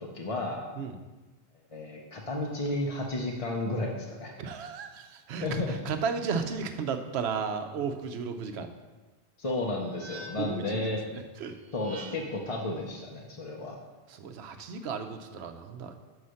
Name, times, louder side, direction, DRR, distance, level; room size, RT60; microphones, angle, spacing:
voice 1, 0.0-0.6 1.7-4.3 5.4-5.8 9.4-11.0 11.7-13.8, left 2 dB, 35° left, -1 dB, 0.6 m, -32 dB
voice 2, 4.4-8.7 10.4-10.8 11.1-11.5 14.1-16.0, right 5 dB, 75° right, 7 dB, 0.9 m, -34 dB
Low Ice shimmer FX, 9.4-10.7 11.6-12.5, right 2 dB, 40° right, 0.7 m, -47 dB
5.6 x 4.8 x 6.3 m, 1.2 s
omnidirectional pair, 1.1 m